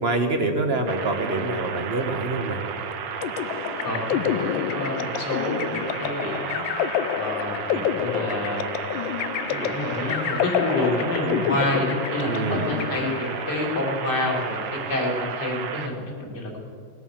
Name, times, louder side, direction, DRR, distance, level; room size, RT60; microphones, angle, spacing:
voice 1, 0.0-2.6 12.2-12.7, right 2 dB, 40° right, 5 dB, 1.2 m, -25 dB
sound 1, 0.9-15.9, right 7 dB, 80° right, 1.7 m, -33 dB
sound 2, 3.2-13.6, left 10 dB, 90° left, 1.3 m, -28 dB
voice 2, 3.8-4.2 4.6-6.6 7.1-8.6 9.5-14.6 14.9-16.6, left 1 dB, 60° left, -1 dB, 3.1 m, -28 dB
19.5 x 8.3 x 7.2 m, 2.5 s
omnidirectional pair, 2.0 m